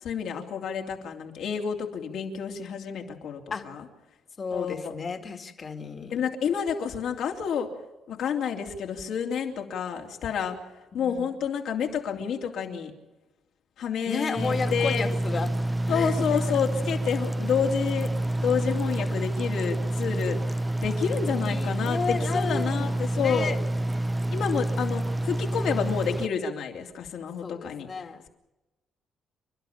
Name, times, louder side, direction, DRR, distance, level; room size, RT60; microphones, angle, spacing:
voice 1, 0.0-3.8 4.5-4.9 6.1-7.7 8.1-10.6 10.9-12.9 13.8-15.1 15.9-18.1 18.4-20.6 20.8-23.5 24.3-27.9, left 7 dB, 75° left, 2 dB, 3.1 m, -29 dB
voice 2, 4.4-6.2 10.9-11.3 14.1-15.5 15.9-16.6 21.3-23.6 27.4-28.2, left 5 dB, 40° left, 6 dB, 2.2 m, -33 dB
sound 1, 14.4-26.3, right 1 dB, 15° right, 0.6 m, -28 dB
29.0 x 12.0 x 8.8 m, 1.1 s
cardioid pair, 90°, 0 cm